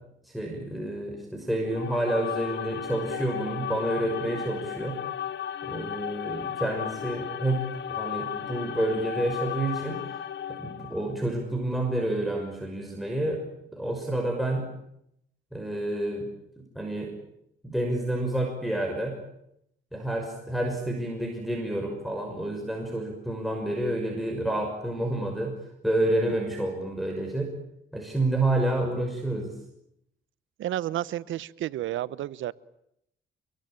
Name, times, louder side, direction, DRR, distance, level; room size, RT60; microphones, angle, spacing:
voice 1, 0.2-5.0 5.6-10.0 10.5-13.4 13.7-14.7 15.5-16.3 16.7-17.2 17.6-19.2 19.9-25.5 25.8-27.5 27.9-29.5, right 1 dB, ahead, 1 dB, 5.9 m, -29 dB
sound 1, 1.6-11.1, left 10 dB, 65° left, 1.4 m, -35 dB
voice 2, 30.6-32.5, right 13 dB, 80° right, 18 dB, 0.9 m, -31 dB
26.0 x 22.0 x 9.1 m, 0.79 s
cardioid pair, 90°, 20 cm